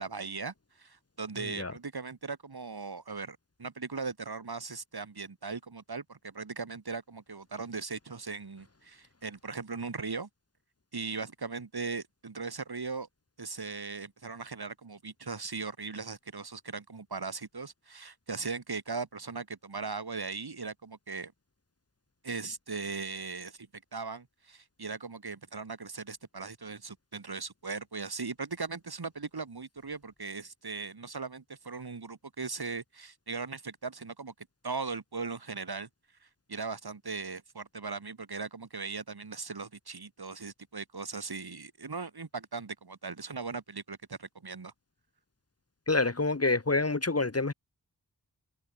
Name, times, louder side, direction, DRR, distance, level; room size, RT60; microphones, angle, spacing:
voice 1, 0.0-10.3 10.9-13.1 13.4-21.3 22.2-35.9 36.2-44.7, right 4 dB, 75° right, 5.7 m, -39 dB
voice 2, 45.9-47.5, left 3 dB, 40° left, 2.0 m, -27 dB
wide cardioid pair, 60°, 39 cm